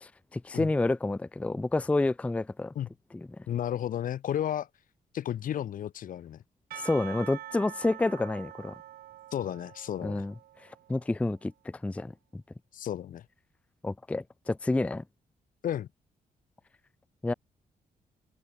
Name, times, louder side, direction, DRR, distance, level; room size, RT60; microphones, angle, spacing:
voice 1, 0.0-2.7 3.1-3.4 6.7-8.8 10.0-10.3 10.9-12.4 13.8-15.0 17.2-17.3, left 2 dB, 10° left, 0.4 m, -29 dB
voice 2, 3.5-4.7 5.1-6.4 9.3-10.2 12.7-13.2 15.6-15.9, left 10 dB, 65° left, 0.7 m, -32 dB
Percussion / Church bell, 6.7-11.1, right 13 dB, 80° right, 0.6 m, -45 dB
open air
cardioid pair, 80°, 15 cm